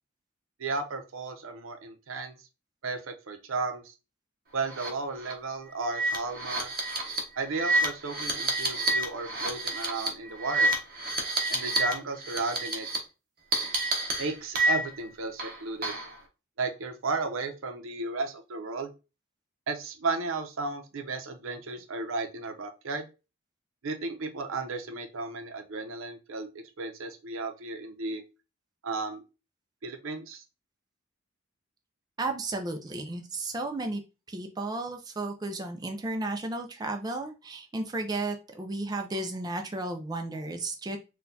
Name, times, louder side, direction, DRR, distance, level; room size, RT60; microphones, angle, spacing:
voice 1, 0.6-2.3 2.8-3.9 4.5-6.7 7.4-10.7 11.5-12.9 14.2-15.9 16.6-18.9 19.7-23.1 23.8-28.2 28.8-29.2 29.8-30.4, right 3 dB, 85° right, 6 dB, 0.6 m, -34 dB
sound 1, 4.7-4.9 5.2-5.3 5.8-11.9 12.2-13.0 13.5-15.0 15.4-16.1, right 2 dB, 45° right, 0.8 m, -29 dB
voice 2, 32.2-34.0 34.3-41.0, right 2 dB, 20° right, 4 dB, 0.4 m, -33 dB
4.2 x 2.2 x 2.6 m, 0.29 s
head